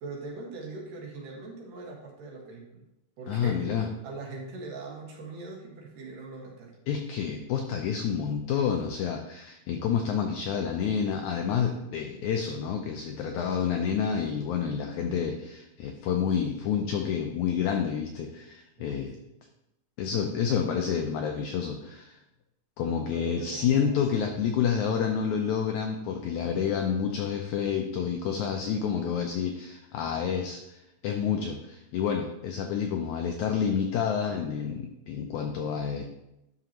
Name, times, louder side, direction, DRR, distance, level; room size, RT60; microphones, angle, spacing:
voice 1, 0.0-2.8 3.2-3.6 4.0-6.8 18.8-19.0 23.1-24.0, right 3 dB, 70° right, -2 dB, 3.1 m, -41 dB
voice 2, 3.3-3.9 6.9-19.2 20.0-22.2 22.8-36.1, left 7 dB, 80° left, 3 dB, 1.7 m, -29 dB
11.0 x 5.9 x 2.9 m, 0.89 s
omnidirectional pair, 4.0 m